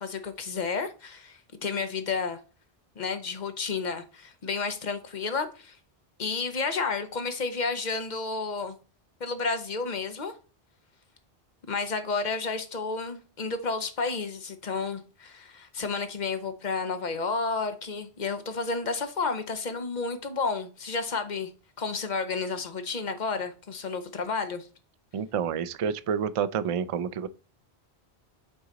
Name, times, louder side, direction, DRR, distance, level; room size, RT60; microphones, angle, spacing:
voice 1, 0.0-2.4 3.0-5.8 6.2-8.7 9.2-10.3 11.7-21.5 21.8-24.7, left 4 dB, 45° left, 1.0 m, -31 dB
voice 2, 25.1-27.3, right 7 dB, 55° right, 0.3 m, -29 dB
6.1 x 3.9 x 3.9 m
omnidirectional pair, 1.1 m